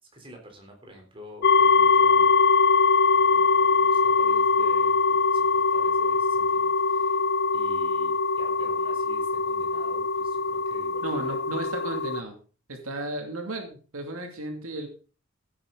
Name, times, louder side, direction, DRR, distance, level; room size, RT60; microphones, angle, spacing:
voice 1, 0.1-2.3 3.1-7.2 7.5-11.4, equal, 25° right, 2 dB, 3.6 m, -47 dB
sound 1, 1.4-12.2, left 4 dB, 50° left, 0.5 m, -22 dB
voice 2, 11.0-12.4 12.7-14.9, right 2 dB, 85° right, 4 dB, 2.5 m, -34 dB
15.5 x 8.7 x 3.9 m, 0.37 s
head